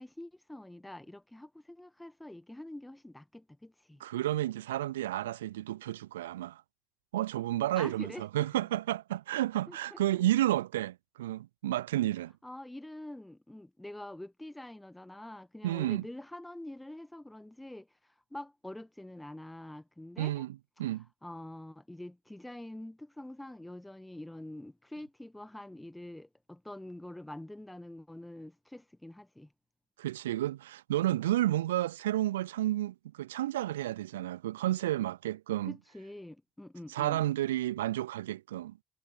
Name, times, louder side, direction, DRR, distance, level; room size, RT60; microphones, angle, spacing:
voice 1, 0.0-4.0 7.8-8.5 9.7-10.0 12.4-17.9 18.3-20.5 21.2-29.5 35.7-37.2, left 1 dB, 10° left, 1.8 m, -46 dB
voice 2, 4.0-6.6 7.1-12.3 15.6-16.0 20.2-21.1 30.0-35.8 36.9-38.8, right 14 dB, 80° right, 0.3 m, -31 dB
figure-of-eight pair, 40°, 0 cm